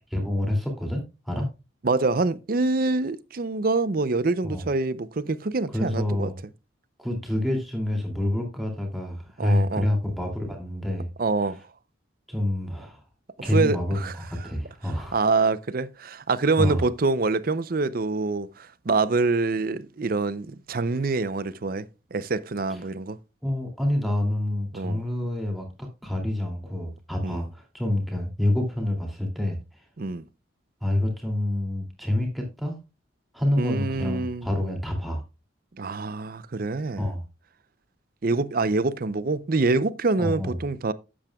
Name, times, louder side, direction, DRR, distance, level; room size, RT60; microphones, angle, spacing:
voice 1, 0.1-1.5 4.4-4.6 5.7-6.3 7.0-11.1 12.3-13.0 13.4-15.2 16.6-16.9 23.4-29.8 30.8-32.8 33.3-35.2 37.0-37.2 40.2-40.6, left 1 dB, ahead, 2.6 m, -27 dB
voice 2, 1.8-6.3 9.4-9.9 11.2-11.6 13.5-14.2 14.4-14.5 15.1-21.9 22.1-23.2 24.7-25.0 27.2-27.5 30.0-30.2 33.6-34.5 35.8-37.1 38.2-40.9, right 3 dB, 45° right, 0.5 m, -25 dB
12.0 x 8.8 x 2.3 m
head